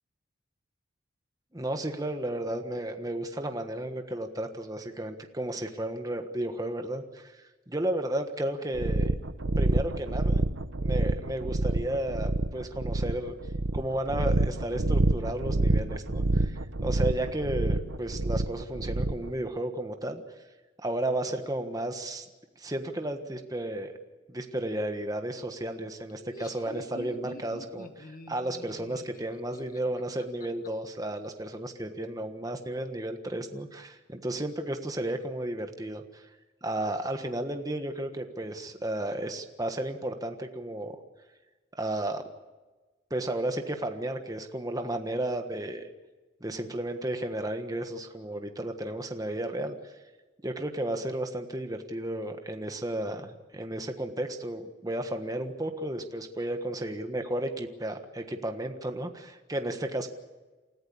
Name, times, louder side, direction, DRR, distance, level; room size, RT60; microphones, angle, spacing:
voice 1, 1.5-9.1 9.6-10.4 10.8-13.3 13.7-20.2 20.8-22.3 22.6-23.9 24.3-36.3 36.6-41.0 41.8-42.2 43.1-45.9 46.4-50.0 50.4-60.1, right 1 dB, 20° right, 6 dB, 1.4 m, -33 dB
sound 1, 8.8-19.3, right 2 dB, 75° right, 0.9 m, -27 dB
Laughter, 26.1-30.7, left 1 dB, 45° left, 1.4 m, -46 dB
28.5 x 14.5 x 8.6 m, 1.2 s
head